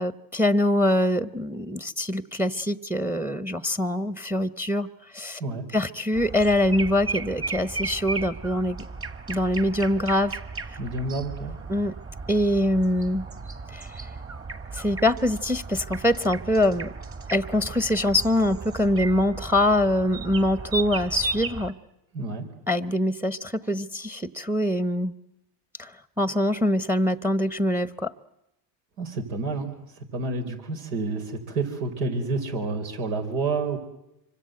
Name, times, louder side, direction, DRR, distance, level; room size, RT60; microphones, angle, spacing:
voice 1, 0.0-4.9 5.1-5.4 5.7-8.8 9.3-10.4 11.7-11.9 12.3-13.2 13.7-13.9 14.7-16.9 17.3-21.7 22.7-25.1 25.8-25.9 26.2-28.1, left 1 dB, 5° right, 14 dB, 1.0 m, -24 dB
sound 1, 6.1-21.7, right 4 dB, 25° right, 2.1 m, -35 dB
voice 2, 10.8-11.6 22.1-22.5 29.0-29.7 30.1-33.8, right 3 dB, 80° right, 4 dB, 4.7 m, -29 dB
26.5 x 25.0 x 7.9 m, 0.86 s
hypercardioid pair, 85°, 50 cm